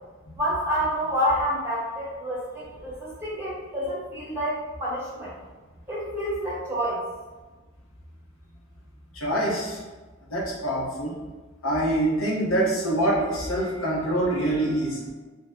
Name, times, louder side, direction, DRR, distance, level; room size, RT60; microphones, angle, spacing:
voice 1, 0.4-5.3 5.9-7.0, equal, 10° right, -8 dB, 0.9 m, -28 dB
voice 2, 9.2-9.8 10.3-11.1 11.6-15.0, right 1 dB, 90° left, -4 dB, 0.9 m, -25 dB
2.8 x 2.0 x 3.5 m, 1.3 s
head